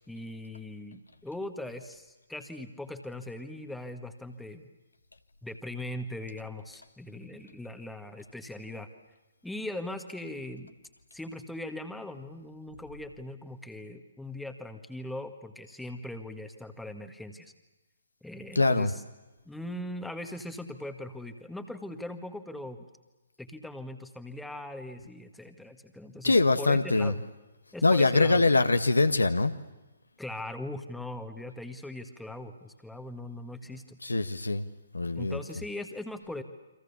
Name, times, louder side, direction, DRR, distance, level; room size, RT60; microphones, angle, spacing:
voice 1, 0.1-4.6 5.4-8.9 9.4-10.7 11.1-17.5 18.2-19.0 19.5-22.9 23.4-27.2 27.7-28.6 30.2-34.0 35.2-36.4, left 1 dB, 5° left, 7 dB, 1.8 m, -40 dB
voice 2, 18.5-18.9 26.2-27.1 27.8-29.5 34.0-34.7 34.9-35.4, left 3 dB, 75° left, 10 dB, 1.5 m, -23 dB
29.0 x 25.5 x 7.1 m, 1.1 s
figure-of-eight pair, 130°, 0 cm